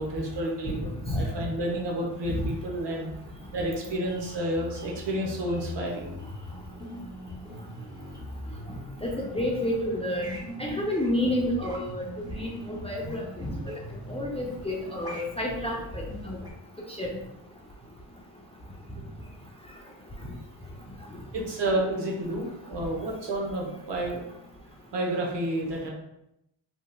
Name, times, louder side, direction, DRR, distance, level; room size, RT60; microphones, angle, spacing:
voice 1, 0.0-3.1 3.5-6.1 21.3-24.2 24.9-25.9, right 1 dB, 60° right, -1 dB, 1.0 m, -30 dB
sound 1, 4.0-16.5, left 1 dB, 10° right, 0.8 m, -41 dB
voice 2, 9.0-12.0 12.3-12.5 12.8-13.5 14.1-15.7 16.3-16.4 17.0-17.1, left 1 dB, 15° left, -2 dB, 0.4 m, -29 dB
2.9 x 2.6 x 2.2 m, 0.82 s
cardioid pair, 60°, 46 cm